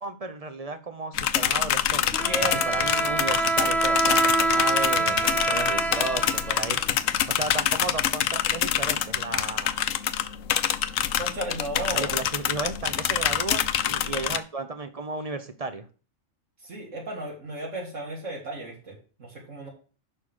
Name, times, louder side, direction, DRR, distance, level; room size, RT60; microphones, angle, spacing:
voice 1, 0.0-6.8 7.3-9.8 11.8-15.9, right 3 dB, 30° right, 8 dB, 0.9 m, -34 dB
sound 1, 1.2-14.4, left 10 dB, 80° left, 1.0 m, -26 dB
Bowed string instrument, 2.1-7.2, right 2 dB, ahead, 0.4 m, -26 dB
voice 2, 2.2-2.9 5.0-5.8 11.2-12.1 16.6-19.7, right 1 dB, 70° right, -2 dB, 2.3 m, -35 dB
6.9 x 5.6 x 6.4 m, 0.37 s
omnidirectional pair, 1.3 m